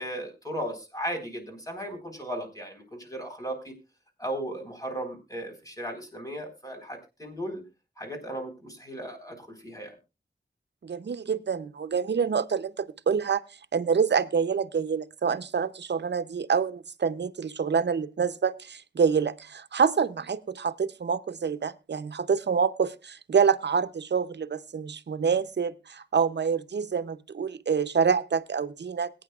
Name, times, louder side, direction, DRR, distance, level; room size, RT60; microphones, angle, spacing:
voice 1, 0.0-3.7 4.2-7.6 8.0-10.0, right 1 dB, 20° left, 4.1 m, -36 dB
voice 2, 10.8-13.4 13.7-29.1, right 6 dB, 70° right, 0.7 m, -27 dB
21.5 x 9.5 x 2.4 m
wide cardioid pair, 60°, 18 cm